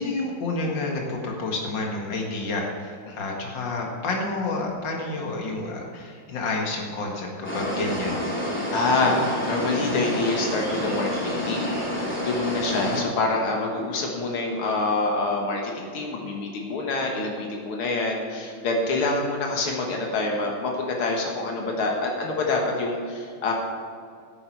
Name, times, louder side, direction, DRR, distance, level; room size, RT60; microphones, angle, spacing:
voice 1, 0.0-8.2 12.7-13.0, left 2 dB, 60° left, 0 dB, 2.4 m, -29 dB
sound 1, 7.4-13.0, left 1 dB, 5° left, 2.6 m, -28 dB
voice 2, 8.7-23.5, left 3 dB, 85° left, 0 dB, 2.3 m, -26 dB
15.5 x 8.8 x 4.6 m, 2.3 s
omnidirectional pair, 2.3 m